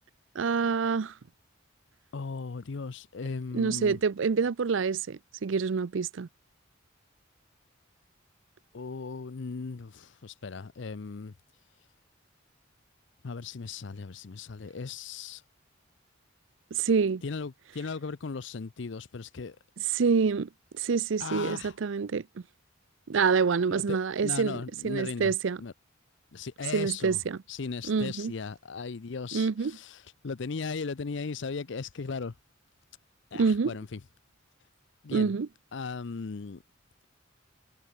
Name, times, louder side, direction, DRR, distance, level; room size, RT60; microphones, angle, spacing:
voice 1, 0.3-1.1 3.5-6.3 16.7-17.2 19.9-20.5 20.8-22.2 23.1-24.6 24.8-25.6 26.7-27.4 27.9-28.3 29.3-29.7 33.3-33.7 35.1-35.5, right 5 dB, 70° right, 0.5 m, -26 dB
voice 2, 2.1-4.0 8.7-11.3 13.2-15.4 17.2-19.6 21.2-21.8 23.7-25.3 25.6-25.7 26.3-27.2 27.5-32.3 33.3-34.0 35.0-35.3 35.7-36.6, left 4 dB, 60° left, 0.6 m, -37 dB
head